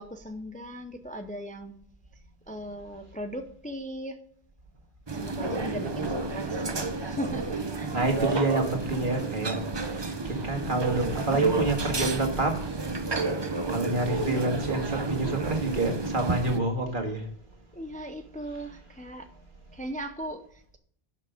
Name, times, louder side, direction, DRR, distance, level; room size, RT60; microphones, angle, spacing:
voice 1, 0.0-1.7 2.1-4.2 5.1-8.0 17.7-19.4 19.7-20.8, equal, 10° left, 6 dB, 0.6 m, -38 dB
sound 1, 5.1-16.6, right 3 dB, 25° right, 0.8 m, -30 dB
voice 2, 7.9-9.6 10.0-12.6 13.7-17.2, right 2 dB, 55° right, 3 dB, 2.1 m, -28 dB
11.0 x 6.0 x 5.1 m, 0.63 s
omnidirectional pair, 1.0 m